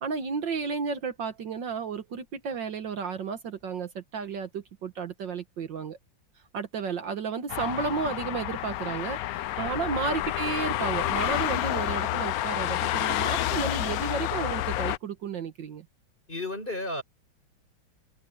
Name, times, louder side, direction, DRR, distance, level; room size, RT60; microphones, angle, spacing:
voice 1, 0.0-6.0 6.5-15.9, right 5 dB, 65° right, 1.9 m, -32 dB
sound 1, 7.5-15.0, left 13 dB, 90° left, 0.8 m, -29 dB
voice 2, 16.3-17.0, left 2 dB, 25° left, 4.9 m, -33 dB
open air
omnidirectional pair, 2.2 m